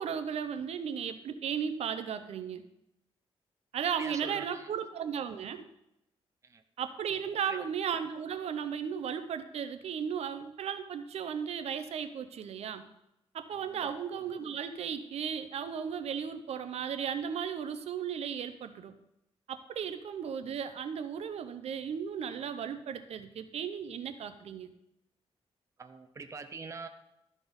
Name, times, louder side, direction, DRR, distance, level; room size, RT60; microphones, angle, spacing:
voice 1, 0.0-2.6 3.7-5.6 6.8-12.8 13.3-18.9 19.5-24.7, right 7 dB, 75° right, 10 dB, 0.6 m, -35 dB
voice 2, 4.0-4.7 6.4-6.6 7.5-7.6 13.7-13.9 25.8-26.9, right 4 dB, 30° right, 7 dB, 0.6 m, -43 dB
12.5 x 4.2 x 5.2 m, 0.85 s
wide cardioid pair, 140°, 11 cm